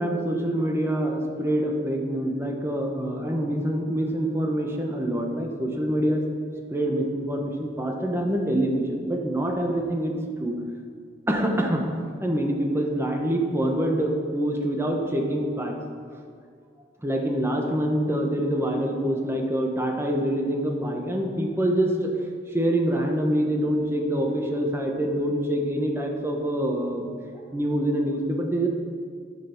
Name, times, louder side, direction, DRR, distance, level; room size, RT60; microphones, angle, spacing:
voice 1, 0.0-6.2 6.7-10.1 10.4-10.5 11.3-11.8 12.2-15.8 17.0-22.1 22.5-27.1 27.5-28.7, right 1 dB, 15° right, 1 dB, 1.2 m, -25 dB
11.5 x 6.0 x 5.9 m, 2.1 s
head